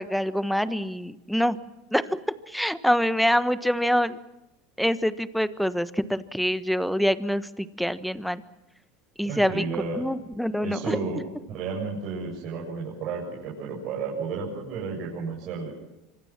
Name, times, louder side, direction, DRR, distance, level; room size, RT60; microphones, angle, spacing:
voice 1, 0.0-1.6 1.9-2.2 2.5-4.2 4.8-8.4 9.2-9.6 9.9-11.0, equal, ahead, 13 dB, 1.4 m, -25 dB
voice 2, 9.2-10.0 10.6-15.7, right 4 dB, 50° right, -4 dB, 7.4 m, -32 dB
25.5 x 25.5 x 6.1 m, 0.95 s
hypercardioid pair, 80°, 0 cm